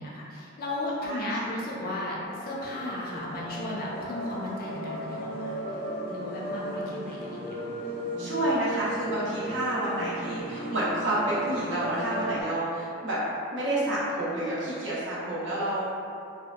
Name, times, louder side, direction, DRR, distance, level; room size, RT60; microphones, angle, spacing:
voice 1, 0.0-5.6 6.1-7.6, left 1 dB, 45° left, -4 dB, 0.4 m, -35 dB
sound 1, 2.2-12.4, right 1 dB, 30° right, 1.2 m, -36 dB
voice 2, 8.2-13.2 13.5-16.0, right 1 dB, 60° right, -8 dB, 0.7 m, -29 dB
2.7 x 2.1 x 2.2 m, 2.6 s
head